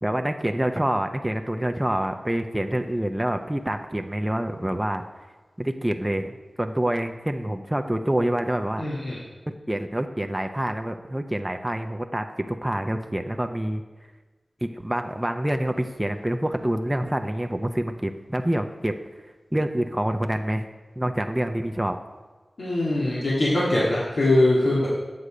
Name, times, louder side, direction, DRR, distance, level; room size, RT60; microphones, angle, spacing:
voice 1, 0.0-5.0 5.6-8.9 9.7-13.8 14.6-18.9 19.5-20.7 21.0-22.0, right 1 dB, 15° right, 6 dB, 0.6 m, -26 dB
voice 2, 8.8-9.2 22.6-24.9, left 1 dB, 80° left, -7 dB, 1.8 m, -22 dB
8.3 x 6.6 x 5.0 m, 1.2 s
wide cardioid pair, 50°, 0 cm